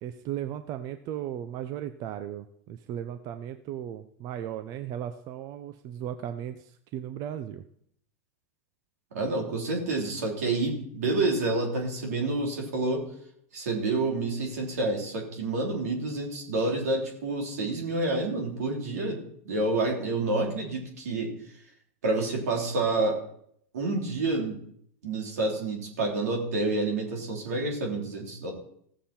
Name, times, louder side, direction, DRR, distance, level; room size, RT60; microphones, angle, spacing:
voice 1, 0.0-7.6, right 10 dB, 45° right, 10 dB, 0.6 m, -36 dB
voice 2, 9.1-13.0 13.5-21.3 22.0-23.2 23.7-24.6 25.0-28.5, right 2 dB, 85° right, 0 dB, 3.4 m, -28 dB
16.0 x 7.3 x 4.3 m, 0.67 s
hypercardioid pair, 115°, 8 cm